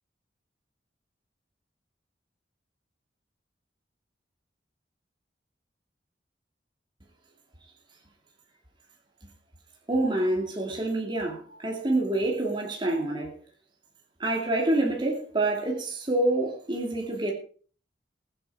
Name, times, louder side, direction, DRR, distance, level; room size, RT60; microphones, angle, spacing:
voice 1, 9.9-13.3 14.2-17.3, right 2 dB, 25° right, 2.5 m, -27 dB
21.5 x 7.8 x 4.7 m
head